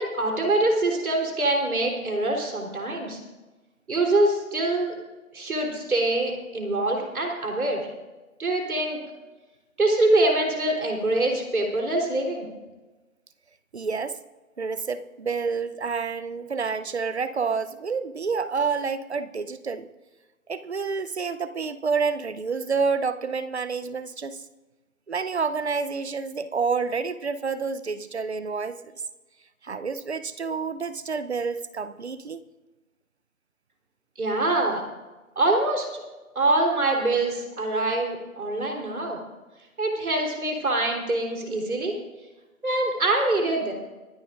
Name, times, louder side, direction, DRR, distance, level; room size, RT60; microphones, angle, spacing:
voice 1, 0.0-3.2 3.9-5.0 5.3-7.8 8.4-9.0 9.8-12.5 34.2-34.8 35.4-36.0 36.4-39.2 39.8-41.9 42.6-43.7, right 2 dB, 75° right, 1 dB, 3.7 m, -24 dB
voice 2, 13.7-14.2 14.6-19.9 20.5-24.4 25.1-28.8 29.6-32.4, right 5 dB, 50° right, 13 dB, 0.8 m, -28 dB
25.5 x 10.5 x 2.5 m, 1.2 s
figure-of-eight pair, 170°, 43 cm